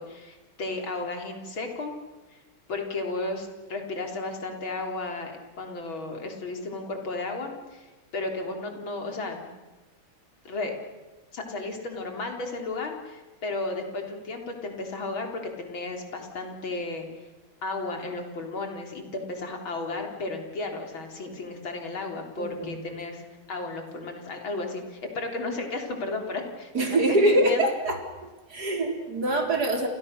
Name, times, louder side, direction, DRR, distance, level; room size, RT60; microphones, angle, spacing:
voice 1, 0.0-1.9 2.3-2.4 2.7-9.5 10.4-10.7 11.3-17.1 17.6-26.7 27.2-27.6, left 3 dB, 70° left, 3 dB, 4.4 m, -34 dB
voice 2, 22.4-22.8 26.7-28.0 28.5-29.9, right 1 dB, 50° right, 4 dB, 4.4 m, -24 dB
29.0 x 29.0 x 6.7 m, 1.2 s
omnidirectional pair, 2.3 m